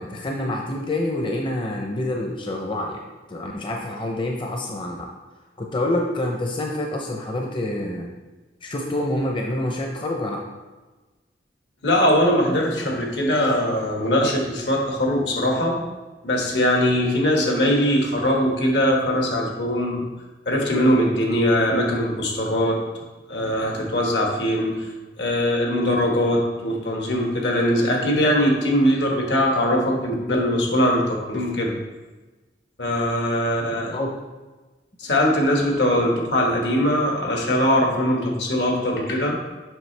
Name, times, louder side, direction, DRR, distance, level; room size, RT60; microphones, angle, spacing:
voice 1, 0.0-3.0 3.3-5.1 5.6-8.1 8.6-10.4 33.9-34.1 35.9-36.0, left 1 dB, 30° left, 1 dB, 0.6 m, -27 dB
voice 2, 11.8-15.8 16.2-20.0 20.4-22.8 23.3-24.9 25.2-31.8 32.8-33.9 35.0-39.4, equal, 75° left, 0 dB, 1.6 m, -21 dB
7.6 x 5.7 x 3.3 m, 1.2 s
head